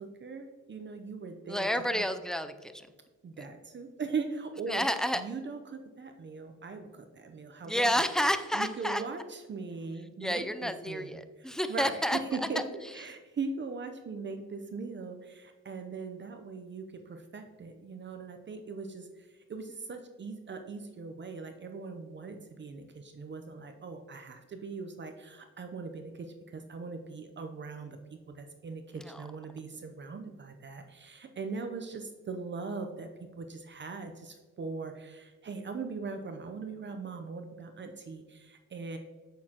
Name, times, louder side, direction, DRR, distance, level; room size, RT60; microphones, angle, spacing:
voice 1, 0.0-1.7 1.9-2.1 3.2-4.9 5.1-7.9 8.5-12.6 12.9-19.1 19.5-33.1 33.4-39.0, right 4 dB, 40° right, 6 dB, 0.7 m, -40 dB
voice 2, 1.5-2.9 3.4-3.5 4.7-5.2 7.6-9.0 10.2-12.5 12.8-12.9 29.0-29.3, equal, ahead, 9 dB, 0.5 m, -30 dB
8.1 x 6.5 x 2.9 m, 1.4 s
cardioid pair, 90°, 30 cm